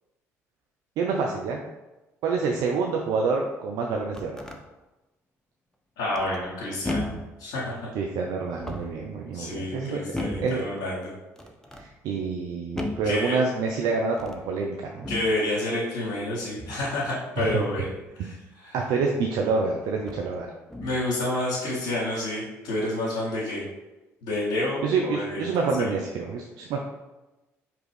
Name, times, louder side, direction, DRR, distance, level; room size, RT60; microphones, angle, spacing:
voice 1, 1.0-1.7 2.2-4.4 7.9-10.0 10.4-10.7 11.7-15.1 17.4-17.5 18.7-20.5 24.8-26.8, right 4 dB, 60° right, 0 dB, 0.5 m, -27 dB
sound 1, 3.8-4.6 6.1-6.5 6.8-7.3 8.5-9.1 10.1-10.6 11.4-11.9 12.8-13.1 14.1-14.5 15.0-15.4 16.6-16.9 19.0-19.1 20.0-20.3 20.7-21.1, left 1 dB, 5° left, 0.6 m, -35 dB
voice 2, 6.0-7.1 7.4-7.9 9.3-11.1 13.0-13.4 15.1-18.7 20.8-23.6 24.2-25.4 25.8-25.9, left 1 dB, 65° left, -9 dB, 1.0 m, -29 dB
5.0 x 3.0 x 3.3 m, 1.1 s
figure-of-eight pair, 50°, 8 cm